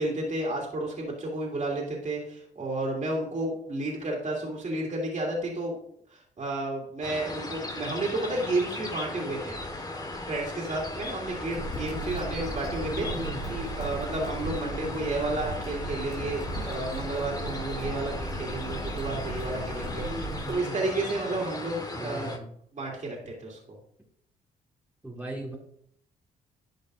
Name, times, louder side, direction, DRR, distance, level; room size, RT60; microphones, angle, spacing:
voice 1, 0.0-5.8 6.1-9.6 10.3-13.1 13.5-22.3 22.7-23.8, right 2 dB, 45° right, -2 dB, 2.7 m, -32 dB
sound 1, 7.0-22.4, left 2 dB, 25° left, 1.6 m, -37 dB
Crackle, 11.5-20.5, right 1 dB, 75° left, 2.6 m, -37 dB
voice 2, 12.9-13.4 20.0-20.9 22.0-22.5 25.0-25.6, right 1 dB, 10° right, -1 dB, 1.8 m, -37 dB
11.5 x 5.2 x 2.6 m, 0.66 s
supercardioid pair, 60°, 17 cm